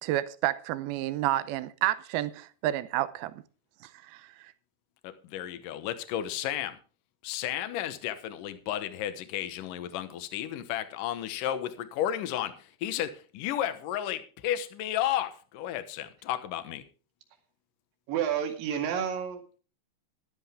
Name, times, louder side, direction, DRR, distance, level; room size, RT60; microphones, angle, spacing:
voice 1, 0.0-3.3 3.8-4.5, right 14 dB, 80° right, 2.6 m, -30 dB
voice 2, 5.0-6.8 7.2-16.8, left 11 dB, 65° left, 2.4 m, -33 dB
voice 3, 18.1-19.6, right 9 dB, 65° right, 3.6 m, -30 dB
14.0 x 12.5 x 3.6 m
omnidirectional pair, 4.6 m